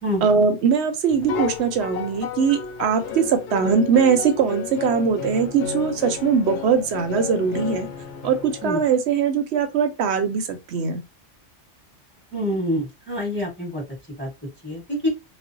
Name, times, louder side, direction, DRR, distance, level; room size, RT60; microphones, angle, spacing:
voice 1, 0.2-7.9 8.2-11.0, right 6 dB, 70° right, 0.8 m, -21 dB
sound 1, 1.1-8.9, left 7 dB, 75° left, 0.9 m, -32 dB
voice 2, 12.3-13.8 14.2-14.3 14.6-15.1, left 1 dB, 10° left, 1.1 m, -26 dB
2.4 x 2.0 x 2.5 m
omnidirectional pair, 1.2 m